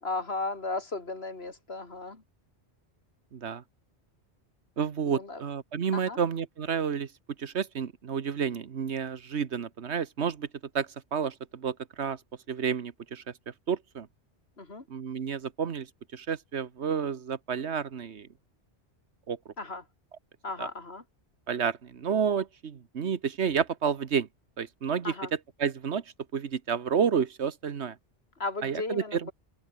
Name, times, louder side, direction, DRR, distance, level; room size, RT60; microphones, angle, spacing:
voice 1, 0.0-2.2 5.1-5.4 5.9-6.2 14.6-14.8 19.6-19.8 20.4-21.0 25.0-25.3 28.4-29.3, left 3 dB, 65° left, 3.3 m, -35 dB
voice 2, 3.3-3.6 4.8-7.1 7.4-10.5 10.7-12.2 12.5-13.2 13.7-14.1 14.9-15.9 16.1-18.3 19.3-19.4 20.6-20.7 21.5-24.3 24.6-25.1 25.6-26.0 26.3-28.0 28.6-29.3, right 7 dB, 75° right, 1.4 m, -30 dB
omnidirectional pair, 1.2 m